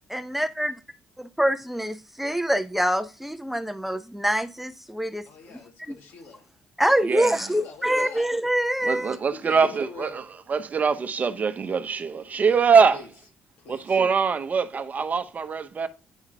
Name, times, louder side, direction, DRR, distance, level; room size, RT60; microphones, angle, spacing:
voice 1, 0.1-0.7 1.4-5.3 5.9-6.0 6.8-9.2, right 1 dB, 5° right, 0.5 m, -25 dB
voice 2, 5.3-6.5 7.3-8.3 9.1-10.2 12.4-12.6 12.9-13.1 13.6-14.0, left 5 dB, 60° left, 1.9 m, -44 dB
voice 3, 7.0-7.4 8.8-10.2 10.5-13.0 13.7-15.9, right 5 dB, 40° right, 0.8 m, -23 dB
9.1 x 4.8 x 2.7 m
hypercardioid pair, 50°, 4 cm